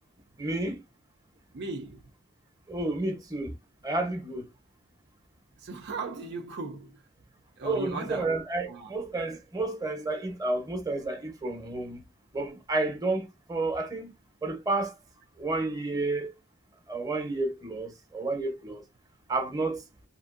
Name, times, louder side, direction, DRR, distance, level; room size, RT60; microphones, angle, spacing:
voice 1, 0.4-0.8 2.7-3.5 3.8-4.5 7.6-12.0 12.3-14.1 14.4-15.0 15.4-16.3 16.9-18.8 19.3-19.8, right 2 dB, 20° right, 0.8 m, -31 dB
voice 2, 1.5-2.0 5.6-7.0 7.6-8.3 8.7-8.9, right 3 dB, 55° right, 0.5 m, -37 dB
2.8 x 2.5 x 2.5 m
head